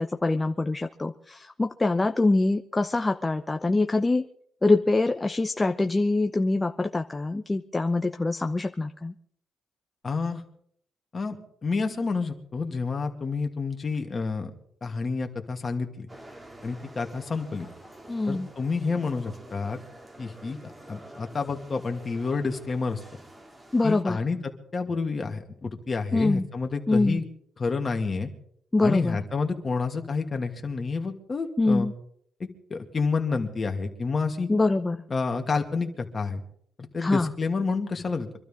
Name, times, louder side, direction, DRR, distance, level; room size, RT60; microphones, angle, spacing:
voice 1, 0.0-4.3 4.6-9.1 18.1-18.5 23.7-24.2 26.1-26.5 26.9-27.2 28.7-29.2 31.6-31.9 34.5-35.0 37.0-37.3, left 2 dB, 20° left, 7 dB, 0.8 m, -24 dB
voice 2, 10.0-10.4 11.1-14.5 14.8-16.1 16.6-17.7 18.3-19.8 20.2-23.0 23.8-27.2 27.6-28.3 28.8-31.9 32.4-34.5 35.1-36.4 36.8-38.4, left 4 dB, 35° left, 4 dB, 2.3 m, -29 dB
sound 1, 16.1-24.0, right 1 dB, 20° right, 2.4 m, -48 dB
25.5 x 12.5 x 3.7 m, 0.64 s
cardioid pair, 90°, 0 cm